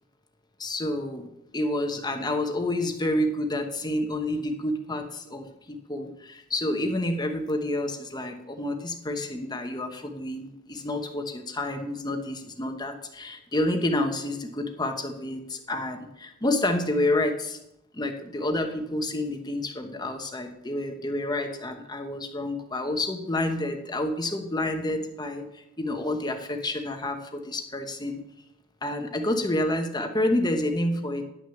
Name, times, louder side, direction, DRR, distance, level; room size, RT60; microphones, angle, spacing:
voice 1, 0.6-1.3 1.5-17.6 17.9-28.2 28.8-31.2, left 1 dB, 20° left, 5 dB, 1.0 m, -29 dB
10.5 x 6.3 x 7.1 m, 0.86 s
head